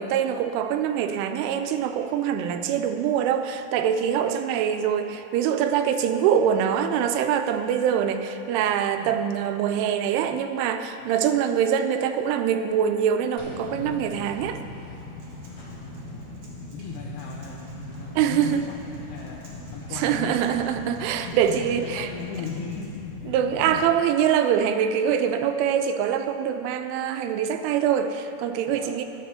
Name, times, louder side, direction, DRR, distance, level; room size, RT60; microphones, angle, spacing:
voice 1, 0.0-14.6 18.2-18.7 19.9-22.1 23.3-29.1, right 8 dB, 85° right, 8 dB, 3.0 m, -24 dB
voice 2, 4.1-4.5 9.0-9.2 10.3-10.4 11.0-11.1 15.6-16.3 16.7-19.4 19.7-20.4 21.2-23.8 28.7-29.0, left 6 dB, 85° left, -1 dB, 2.3 m, -38 dB
sound 1, 13.4-23.9, left 2 dB, 50° left, 1.7 m, -40 dB
Acoustic guitar, 15.0-23.0, right 2 dB, 65° right, 1.7 m, -48 dB
11.0 x 6.5 x 6.5 m, 2.8 s
omnidirectional pair, 5.5 m